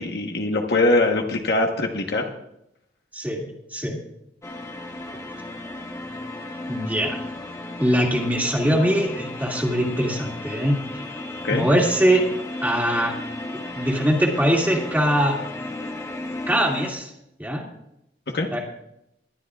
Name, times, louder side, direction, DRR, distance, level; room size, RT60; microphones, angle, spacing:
voice 1, 0.0-2.2 11.4-11.7 18.3-18.5, left 2 dB, 65° left, 2 dB, 1.3 m, -22 dB
voice 2, 3.1-4.0 6.7-7.2 7.8-10.8 11.5-12.3 12.6-13.1 13.7-15.4 16.5-17.1 17.4-17.6 18.5-18.6, equal, 10° right, -1 dB, 2.4 m, -22 dB
sound 1, 4.4-16.9, left 2 dB, 15° left, 1.1 m, -34 dB
20.5 x 12.0 x 2.5 m, 0.81 s
head